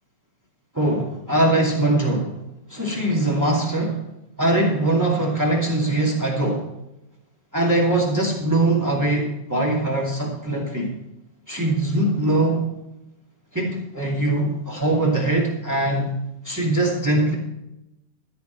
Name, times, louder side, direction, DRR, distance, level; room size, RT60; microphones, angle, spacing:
voice 1, 0.7-2.4 2.7-4.0 4.4-6.7 7.5-10.9 11.5-12.7 13.5-16.1 16.4-17.3, right 2 dB, 10° right, -1 dB, 1.0 m, -22 dB
13.0 x 10.5 x 4.6 m, 0.90 s
omnidirectional pair, 4.9 m